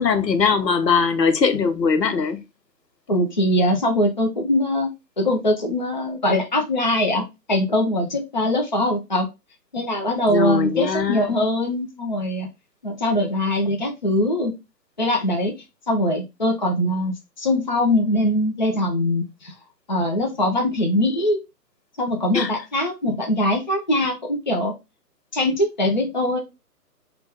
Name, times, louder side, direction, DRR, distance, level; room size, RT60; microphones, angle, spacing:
voice 1, 0.0-2.4 10.3-11.3 22.3-22.5, left 5 dB, 90° left, 0.8 m, -20 dB
voice 2, 3.1-4.9 5.2-7.2 7.5-9.3 9.7-12.5 12.8-14.5 15.0-15.5 15.9-19.5 19.9-21.4 22.0-24.7 25.3-26.4, left 1 dB, 30° left, 0.4 m, -22 dB
3.9 x 2.3 x 3.3 m
figure-of-eight pair, 145°, 49 cm